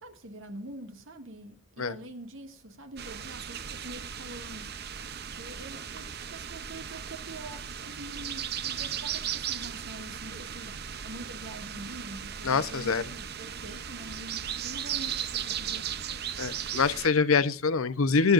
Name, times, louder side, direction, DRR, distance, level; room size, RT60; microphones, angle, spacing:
voice 1, 0.0-4.7 5.4-10.8 11.0-16.0, right 1 dB, 65° right, 2.1 m, -45 dB
sound 1, 3.0-17.1, right 8 dB, 50° right, 0.7 m, -37 dB
voice 2, 12.4-13.0 16.4-18.3, left 4 dB, 85° left, 0.8 m, -24 dB
23.5 x 10.5 x 2.6 m
head